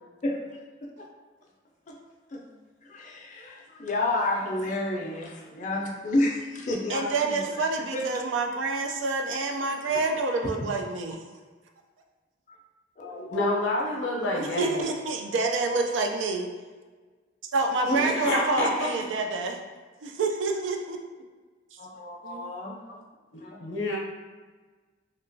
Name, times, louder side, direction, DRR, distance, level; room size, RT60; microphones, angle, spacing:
voice 1, 2.8-7.6 7.9-8.1 9.7-9.8 12.5-12.6 13.0-13.8 21.8-22.8 23.4-23.6, left 2 dB, 40° left, -1 dB, 0.4 m, -31 dB
voice 2, 6.9-11.2 14.3-16.5 17.5-19.6 20.0-21.0 22.2-22.5, right 3 dB, 75° right, 4 dB, 0.3 m, -28 dB
voice 3, 13.3-14.9 17.8-18.9 22.9-23.0 23.3-24.0, left 1 dB, 80° left, -2 dB, 0.6 m, -28 dB
2.8 x 2.2 x 2.6 m, 1.4 s
head